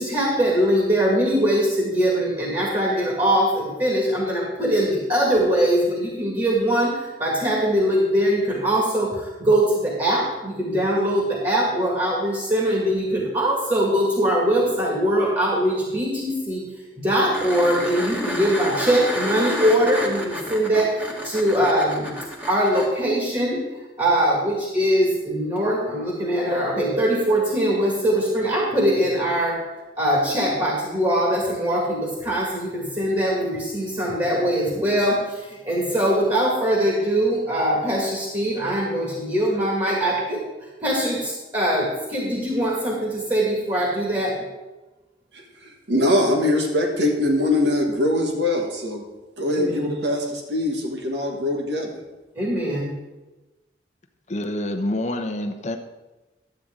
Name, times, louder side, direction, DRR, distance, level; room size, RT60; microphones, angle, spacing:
voice 1, 0.0-16.6 17.0-22.1 22.5-23.6 24.0-29.6 30.0-40.4 40.8-44.4 49.5-50.0 52.4-53.0, equal, 25° right, -4 dB, 2.0 m, -22 dB
sound 1, 17.3-22.9 25.6-25.7, equal, 10° right, 1.4 m, -30 dB
voice 2, 45.9-49.0 49.4-51.9, left 1 dB, 85° right, 2 dB, 1.5 m, -22 dB
voice 3, 54.3-55.8, left 1 dB, 40° left, 5 dB, 0.8 m, -27 dB
12.0 x 8.6 x 3.8 m, 1.1 s
head